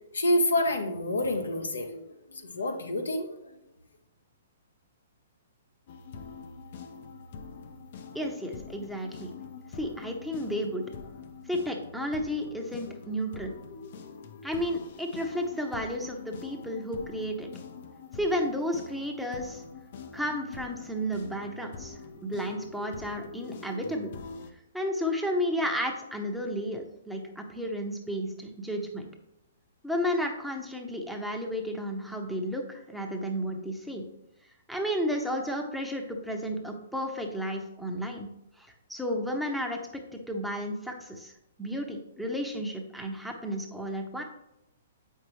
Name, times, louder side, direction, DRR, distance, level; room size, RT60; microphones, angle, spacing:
voice 1, 0.1-3.6, left 1 dB, 90° left, 5 dB, 1.0 m, -28 dB
sound 1, 5.9-24.5, left 5 dB, 55° left, 0.6 m, -44 dB
voice 2, 8.1-9.3 9.7-10.8 11.5-13.5 14.4-17.5 18.1-19.6 20.1-24.1 24.7-29.1 29.8-34.0 34.7-38.3 38.6-39.8 40.1-41.3 41.6-44.2, equal, ahead, 1 dB, 0.9 m, -32 dB
7.5 x 5.6 x 3.1 m, 0.85 s
hypercardioid pair, 130°, 0 cm